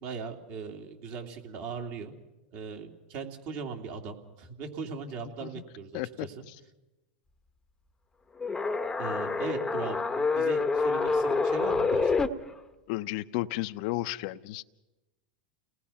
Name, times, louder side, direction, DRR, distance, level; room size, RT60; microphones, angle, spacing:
voice 1, 0.0-2.1 2.5-6.4 9.0-12.1, right 5 dB, 50° right, 3 dB, 3.0 m, -39 dB
voice 2, 5.9-6.3 12.9-14.6, left 17 dB, 55° left, 13 dB, 0.8 m, -33 dB
sound 1, 8.4-12.3, left 4 dB, 10° left, 1.0 m, -27 dB
30.0 x 19.0 x 5.8 m, 1.1 s
supercardioid pair, 125°, 5 cm